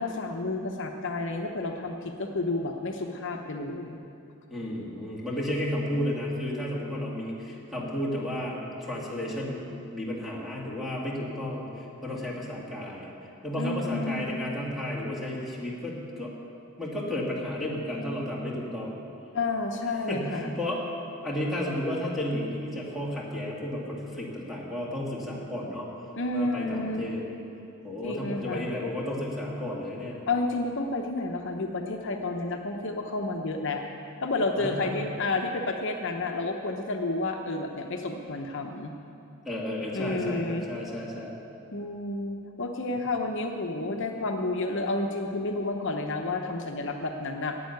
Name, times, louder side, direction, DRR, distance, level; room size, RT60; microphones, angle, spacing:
voice 1, 0.0-4.0 13.6-14.3 19.3-20.5 26.1-27.0 28.0-28.7 30.3-33.8 34.2-38.9 39.9-40.7 41.7-47.6, left 2 dB, 60° left, 3 dB, 0.8 m, -30 dB
voice 2, 4.5-13.1 13.4-16.3 16.8-19.0 20.0-20.8 21.2-25.9 26.3-27.2 27.8-30.2 34.6-35.0 39.4-41.3, left 1 dB, ahead, -5 dB, 2.3 m, -33 dB
11.0 x 8.7 x 9.5 m, 2.8 s
head